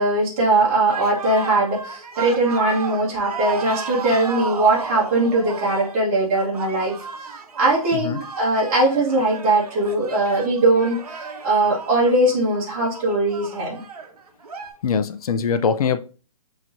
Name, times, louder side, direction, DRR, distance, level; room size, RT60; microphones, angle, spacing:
voice 1, 0.0-6.9 7.6-11.0 11.4-13.8, right 2 dB, 20° right, 1.3 m, -20 dB
sound 1, 0.9-14.7, right 5 dB, 85° right, 0.9 m, -34 dB
voice 2, 14.8-16.0, left 6 dB, 75° left, 0.5 m, -22 dB
5.9 x 3.0 x 2.6 m
hypercardioid pair, 175°, 19 cm